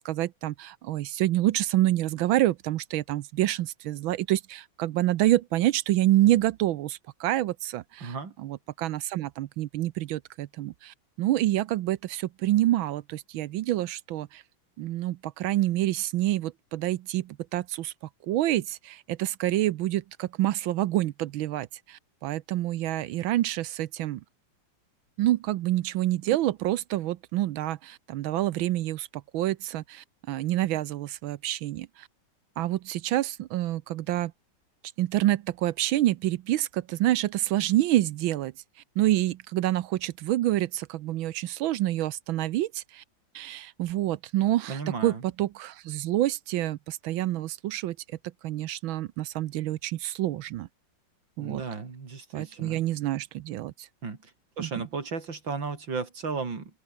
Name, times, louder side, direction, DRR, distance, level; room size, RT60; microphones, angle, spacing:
voice 1, 0.0-14.4 14.8-17.9 18.3-24.2 25.2-29.1 29.3-32.1 32.6-34.3 35.0-38.5 39.0-43.0 43.3-48.0 48.4-50.7 51.4-51.6 52.3-53.9 54.6-54.7, right 14 dB, 80° right, 1.5 m, -27 dB
voice 2, 8.0-8.3 44.7-45.2 51.4-52.8 54.0-54.3 54.6-56.8, right 4 dB, 65° right, 3.8 m, -34 dB
open air
omnidirectional pair, 2.2 m